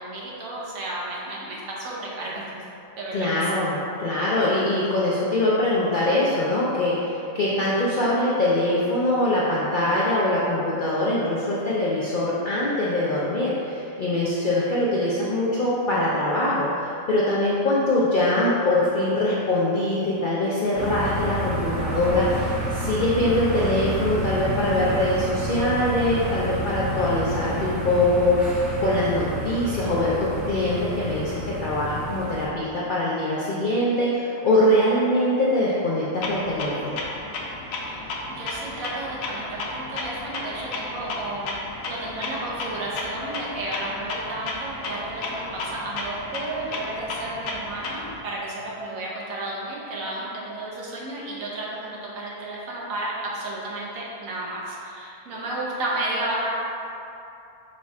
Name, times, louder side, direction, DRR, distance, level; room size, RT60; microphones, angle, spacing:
voice 1, 0.0-2.7 3.0-3.5 37.7-41.5 41.9-56.5, right 2 dB, 75° right, -5 dB, 1.3 m, -32 dB
voice 2, 3.1-28.4 28.8-36.9, left 1 dB, 65° left, -7 dB, 0.5 m, -23 dB
sound 1, 20.7-32.5, right 1 dB, ahead, 0.5 m, -30 dB
Clock, 36.2-48.2, left 2 dB, 85° left, 1.1 m, -33 dB
5.1 x 2.4 x 4.1 m, 2.7 s
omnidirectional pair, 1.5 m